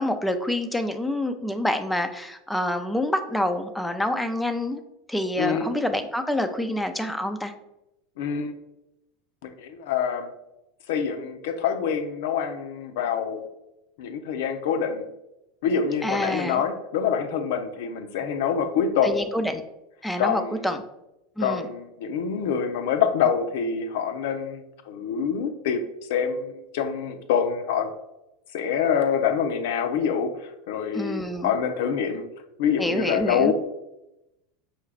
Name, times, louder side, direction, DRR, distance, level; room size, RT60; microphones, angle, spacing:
voice 1, 0.0-4.8 5.1-7.5 16.0-16.6 19.0-19.6 20.0-20.8 21.4-21.7 30.9-31.5 32.8-33.5, left 1 dB, 5° left, 7 dB, 0.4 m, -27 dB
voice 2, 5.4-5.7 8.2-8.5 9.4-10.3 10.9-13.5 14.0-15.0 15.6-19.2 20.2-20.8 21.4-27.9 28.5-32.2 32.6-33.5, left 7 dB, 65° left, 7 dB, 0.4 m, -26 dB
5.6 x 2.3 x 3.2 m, 0.90 s
hypercardioid pair, 85°, 0 cm